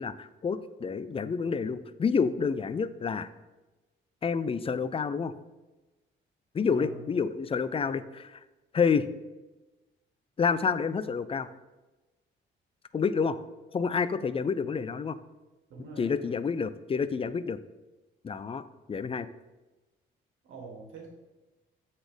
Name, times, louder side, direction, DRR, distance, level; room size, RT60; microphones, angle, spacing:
voice 1, 0.0-3.3 4.2-5.3 6.5-8.4 8.7-9.1 10.4-11.5 12.9-13.4 13.7-15.2 16.0-17.6 18.2-19.3, left 5 dB, 30° left, 14 dB, 0.4 m, -29 dB
voice 2, 6.6-7.1 15.7-16.2 20.4-21.1, right 4 dB, 80° right, 1 dB, 1.8 m, -44 dB
8.0 x 4.1 x 5.1 m, 1.1 s
cardioid pair, 90°, 20 cm